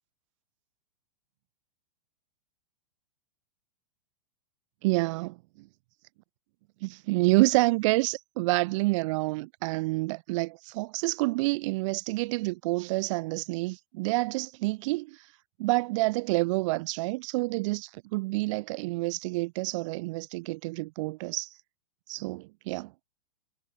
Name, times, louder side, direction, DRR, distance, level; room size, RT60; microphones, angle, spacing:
voice 1, 4.8-5.7 6.8-15.3 15.6-21.5 22.1-22.9, right 23 dB, 50° right, 2.6 m, -28 dB
hypercardioid pair, 145°, 21 cm